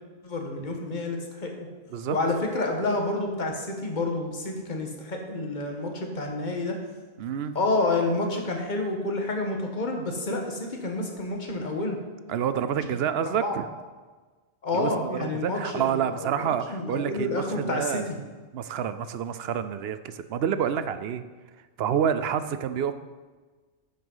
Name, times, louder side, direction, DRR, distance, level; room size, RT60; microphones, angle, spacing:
voice 1, 0.2-1.7 2.1-6.8 7.5-12.0 12.7-12.9 13.2-13.6 14.6-18.2, left 2 dB, 40° left, 2 dB, 1.5 m, -29 dB
voice 2, 7.2-7.6 12.3-13.6 14.7-18.0 18.5-21.2 21.8-22.9, right 8 dB, 60° right, 12 dB, 0.8 m, -28 dB
10.0 x 6.7 x 5.5 m, 1.3 s
omnidirectional pair, 1.3 m